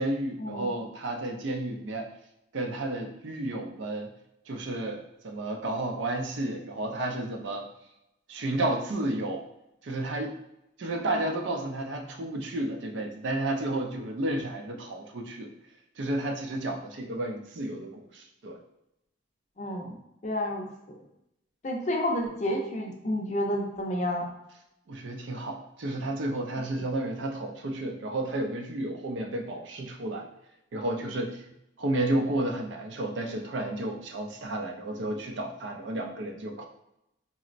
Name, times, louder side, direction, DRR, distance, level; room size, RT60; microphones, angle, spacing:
voice 1, 0.0-2.1 2.5-4.1 4.5-7.7 8.3-9.4 9.8-10.4 10.8-15.5 16.0-18.6 24.9-30.3 30.7-31.4 31.8-36.7, right 1 dB, 80° right, 4 dB, 0.5 m, -32 dB
voice 2, 19.6-20.0 20.2-21.0 21.6-24.3, left 1 dB, 40° left, 1 dB, 0.5 m, -30 dB
4.0 x 2.0 x 2.4 m, 0.86 s
head